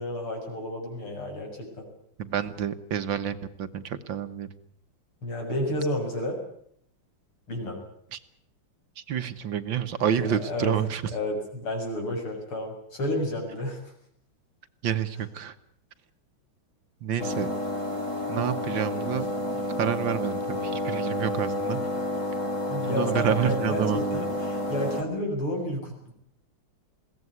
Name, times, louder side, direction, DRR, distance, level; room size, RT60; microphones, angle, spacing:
voice 1, 0.0-1.9 5.2-6.4 7.5-7.8 10.2-10.7 11.1-13.8 22.7-26.1, left 1 dB, 80° left, 2 dB, 8.0 m, -31 dB
voice 2, 2.2-4.5 8.1-8.2 9.0-11.0 14.8-15.6 17.0-17.5 18.3-19.3 19.8-21.8 22.9-24.2, right 9 dB, 65° right, 11 dB, 1.8 m, -28 dB
sound 1, 17.2-25.0, left 1 dB, 35° left, 2.7 m, -30 dB
22.0 x 17.5 x 9.6 m, 0.67 s
omnidirectional pair, 2.4 m